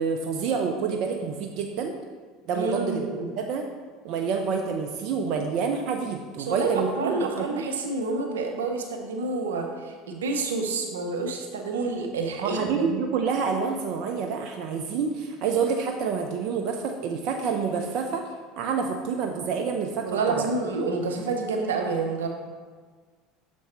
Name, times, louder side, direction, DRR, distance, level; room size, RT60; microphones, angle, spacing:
voice 1, 0.0-1.9 2.5-3.1 3.4-3.7 4.0-7.6 12.4-18.2 18.6-20.5, right 5 dB, 60° right, 3 dB, 0.6 m, -28 dB
voice 2, 2.5-3.3 6.4-12.9 20.0-22.3, right 3 dB, 85° right, 2 dB, 0.8 m, -28 dB
6.9 x 4.6 x 4.3 m, 1.5 s
hypercardioid pair, 75°, 0 cm